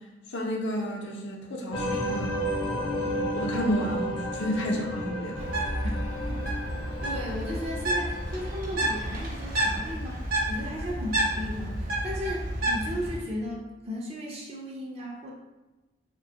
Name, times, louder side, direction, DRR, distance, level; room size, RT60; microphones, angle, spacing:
voice 1, 0.3-5.5, equal, 85° left, -1 dB, 0.6 m, -31 dB
sound 1, 1.7-8.6, equal, 30° left, 0.4 m, -33 dB
Bird, 5.4-13.2, right 1 dB, 55° right, 0.7 m, -30 dB
voice 2, 7.0-15.3, equal, 35° right, -2 dB, 0.4 m, -35 dB
2.7 x 2.2 x 2.7 m, 1.1 s
head